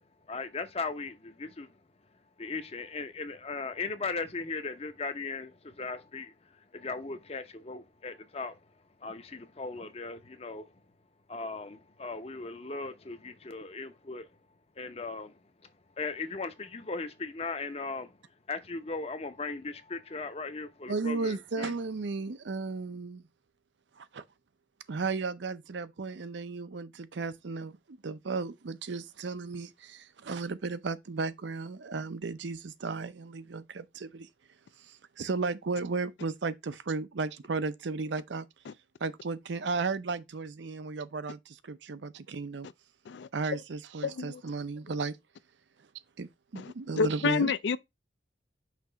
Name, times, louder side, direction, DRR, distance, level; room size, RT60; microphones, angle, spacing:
voice 1, 0.3-1.7 2.4-8.6 9.0-10.7 11.3-14.3 14.8-15.7 16.0-18.2 18.5-21.7, left 3 dB, 35° left, 0.7 m, -38 dB
voice 2, 20.9-23.2 24.0-24.2 24.9-34.3 34.8-38.5 39.0-42.7 43.3-45.2 46.2-47.5, right 4 dB, 75° right, 0.6 m, -34 dB
voice 3, 44.0-44.4 46.6-46.7 47.0-47.8, left 5 dB, 70° left, 0.4 m, -29 dB
5.9 x 2.9 x 5.5 m
head